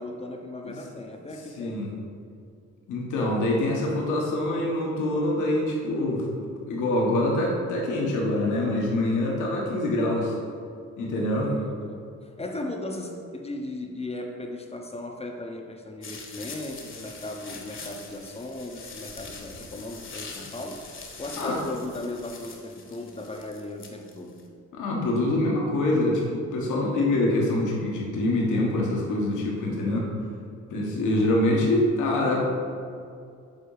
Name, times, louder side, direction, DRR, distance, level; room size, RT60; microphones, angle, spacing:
voice 1, 0.0-1.9 11.1-20.8 21.2-24.4, left 2 dB, 20° left, 3 dB, 0.7 m, -37 dB
voice 2, 1.6-1.9 2.9-6.3 6.7-10.3 11.0-11.5 21.4-21.6 24.7-30.1 30.7-32.4, left 1 dB, 80° left, -2 dB, 1.5 m, -25 dB
sound 1, 16.0-24.4, left 4 dB, 40° left, 1.2 m, -43 dB
8.1 x 3.7 x 4.9 m, 2.4 s
cardioid pair, 90°, 30 cm